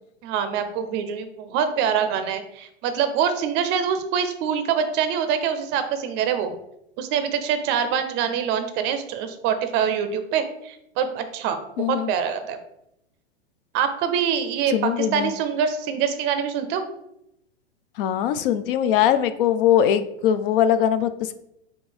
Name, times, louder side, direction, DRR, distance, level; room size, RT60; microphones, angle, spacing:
voice 1, 0.2-6.5 7.0-11.6 11.9-12.6 13.7-16.8, right 7 dB, 30° right, 9 dB, 0.5 m, -25 dB
voice 2, 11.8-12.1 14.7-15.3 18.0-21.3, left 10 dB, 50° left, 12 dB, 0.5 m, -21 dB
3.7 x 2.7 x 4.3 m, 0.81 s
hypercardioid pair, 110°, 35 cm